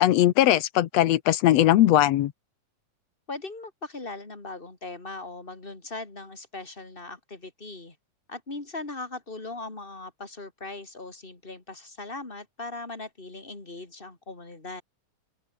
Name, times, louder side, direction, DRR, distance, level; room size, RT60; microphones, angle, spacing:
voice 1, 0.0-2.3, left 13 dB, 70° left, 1.8 m, -20 dB
voice 2, 3.3-8.0 8.3-14.8, left 3 dB, 15° left, 3.5 m, -39 dB
open air
omnidirectional pair, 3.7 m